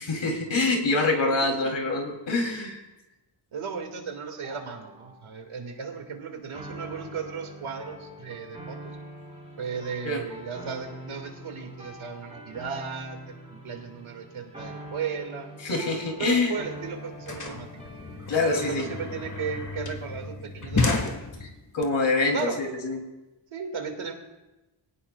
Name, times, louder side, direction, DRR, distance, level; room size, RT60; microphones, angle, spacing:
voice 1, 0.0-2.8 10.0-10.2 15.6-16.6 18.3-18.8 21.4-23.0, left 3 dB, 65° left, 2 dB, 3.1 m, -25 dB
voice 2, 1.3-1.8 3.5-8.8 9.6-15.5 16.2-17.7 18.4-21.1 22.3-22.6 23.5-24.1, right 6 dB, 80° right, 4 dB, 2.1 m, -35 dB
sound 1, 4.3-18.8, right 1 dB, 10° right, 5.1 m, -44 dB
sound 2, 16.4-16.5 16.6-21.8, left 3 dB, 35° left, 1.6 m, -31 dB
23.5 x 17.5 x 2.3 m, 1.0 s
wide cardioid pair, 150°, 48 cm